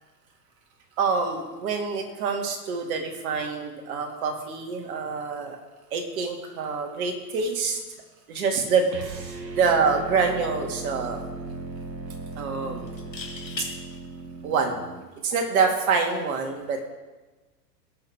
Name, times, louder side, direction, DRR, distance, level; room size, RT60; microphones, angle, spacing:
voice 1, 1.0-5.6 5.9-7.8 8.3-8.9 9.5-11.2 12.4-12.9 14.4-14.8 15.2-16.9, right 5 dB, 55° right, 3 dB, 2.2 m, -26 dB
sound 1, 8.9-15.1, right 3 dB, 80° right, 1.3 m, -37 dB
sound 2, 12.9-13.7 15.5-15.8, left 5 dB, 85° left, 1.7 m, -37 dB
18.0 x 6.4 x 3.4 m, 1.2 s
figure-of-eight pair, 100°, 49 cm